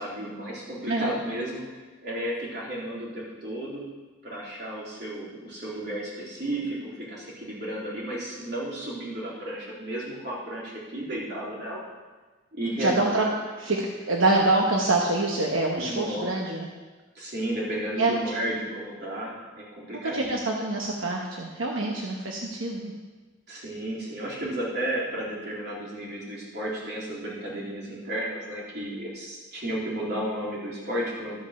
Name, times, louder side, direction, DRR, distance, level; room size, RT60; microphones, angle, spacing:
voice 1, 0.0-3.9 4.2-11.8 12.5-13.2 15.8-16.3 17.2-20.3 23.5-31.3, right 1 dB, 55° right, -6 dB, 3.5 m, -33 dB
voice 2, 12.8-13.3 13.6-16.7 18.0-18.2 20.1-22.9, right 2 dB, 90° right, -1 dB, 1.1 m, -25 dB
13.0 x 5.5 x 6.5 m, 1.3 s
head